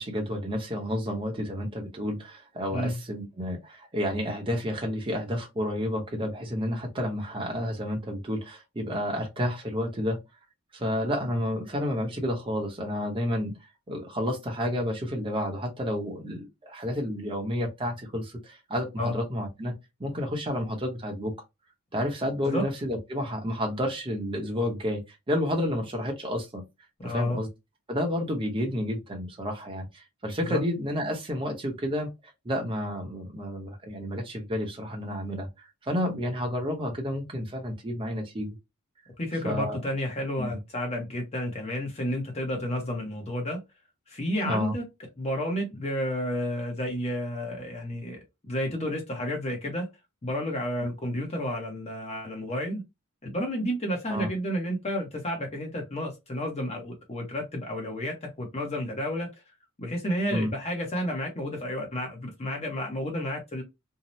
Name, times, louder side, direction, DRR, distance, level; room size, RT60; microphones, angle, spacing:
voice 1, 0.0-10.2 10.7-13.5 13.9-19.7 20.0-21.3 21.9-26.6 27.0-27.5 27.9-32.1 32.4-35.5 35.8-38.5 39.4-39.8 40.4-40.6 44.4-44.7 54.1-54.3 60.3-60.5, equal, 25° right, 0.8 m, -30 dB
voice 2, 27.0-27.4 30.4-30.6 39.2-43.6 44.1-44.9 45.2-49.9 50.2-52.8 53.2-59.3 59.8-63.6, equal, 30° left, 0.7 m, -31 dB
2.7 x 2.0 x 3.0 m
head